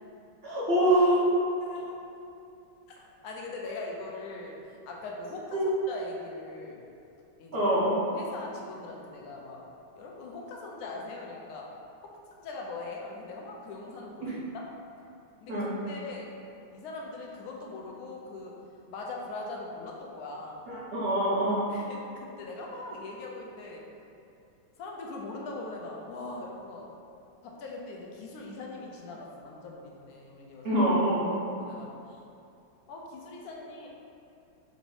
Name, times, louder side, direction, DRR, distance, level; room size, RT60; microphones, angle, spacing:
voice 1, 0.4-1.3 5.5-5.7 7.5-7.9 14.2-14.3 15.5-15.7 20.7-21.6 30.6-31.3, right 1 dB, 50° right, -8 dB, 0.7 m, -25 dB
voice 2, 1.6-1.9 3.2-4.5 4.9-5.6 5.9-6.8 7.4-7.7 8.1-9.6 10.0-11.7 12.4-14.6 15.4-16.3 16.7-18.5 18.9-20.6 21.7-23.8 24.8-26.8 27.6-30.8 31.3-32.2 32.9-33.9, left 3 dB, 70° left, -1 dB, 0.9 m, -41 dB
4.0 x 2.6 x 4.7 m, 2.6 s
omnidirectional pair, 2.0 m